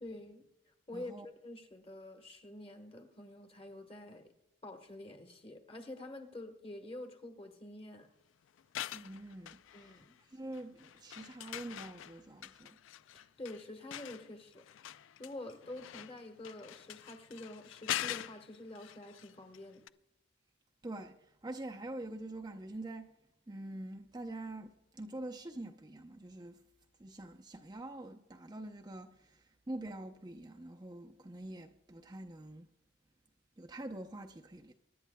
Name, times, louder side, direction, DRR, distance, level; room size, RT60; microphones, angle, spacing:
voice 1, 0.0-0.5 0.9-1.1 1.4-4.3 4.6-8.1 9.7-10.2 13.1-14.6 15.2-19.8, left 1 dB, 30° left, 1.3 m, -47 dB
voice 2, 0.9-1.3 8.9-10.0 10.3-12.8 20.8-21.2 21.4-23.1 23.5-26.6 27.0-32.7 33.6-34.7, right 1 dB, 20° right, 0.5 m, -45 dB
sound 1, 8.6-10.2 10.5-19.6 19.9-20.0, left 12 dB, 75° left, 0.3 m, -44 dB
24.0 x 11.0 x 2.2 m
head